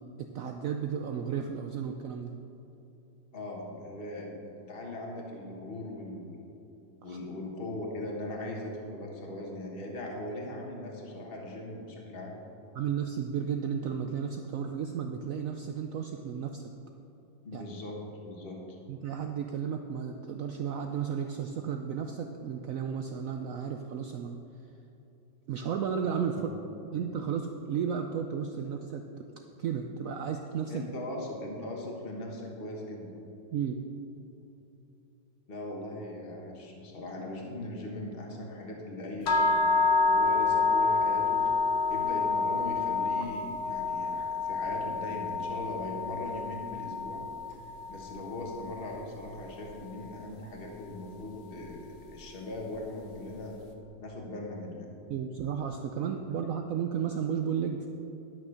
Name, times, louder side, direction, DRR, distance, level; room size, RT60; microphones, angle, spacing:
voice 1, 0.0-2.3 7.1-7.2 12.7-16.6 17.5-17.6 18.9-24.4 25.5-26.4 26.9-29.2 29.6-30.8 33.5-33.8 55.1-57.9, right 7 dB, 90° right, 5 dB, 0.7 m, -33 dB
voice 2, 3.3-4.4 4.7-6.3 7.0-12.4 17.4-18.8 26.3-26.5 30.7-33.1 35.5-41.5 41.9-47.2 47.9-51.8 52.1-53.6 54.0-54.9, left 1 dB, 30° left, -1 dB, 1.6 m, -39 dB
sound 1, 39.3-49.3, left 4 dB, 60° left, 1.4 m, -28 dB
11.5 x 6.1 x 6.4 m, 3.0 s
omnidirectional pair, 2.1 m